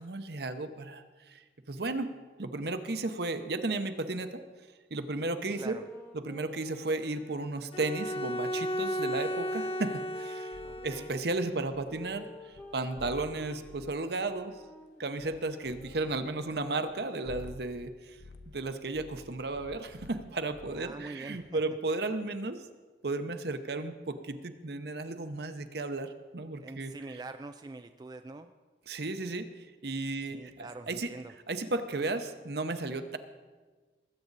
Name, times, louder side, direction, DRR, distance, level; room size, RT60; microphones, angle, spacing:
voice 1, 0.0-4.4 4.9-5.8 6.1-10.6 10.8-14.6 15.0-18.2 18.5-22.6 23.0-26.9 28.9-31.1 31.5-33.2, right 2 dB, 60° right, 9 dB, 0.8 m, -34 dB
sound 1, 5.5-11.1 11.8-17.4, left 2 dB, 15° left, 1.1 m, -51 dB
Bowed string instrument, 7.7-11.2, equal, 30° left, 0.5 m, -34 dB
sound 2, 10.5-12.3 12.5-12.6 12.9-14.0 14.3-14.9 15.2-15.4 15.7-16.9 17.2-17.9 18.2-20.9, left 3 dB, 75° left, 0.7 m, -51 dB
voice 2, 10.6-11.1 20.7-21.6 26.6-28.5 30.3-31.3, right 3 dB, 20° right, 8 dB, 0.3 m, -44 dB
20.0 x 8.4 x 4.0 m, 1.4 s
head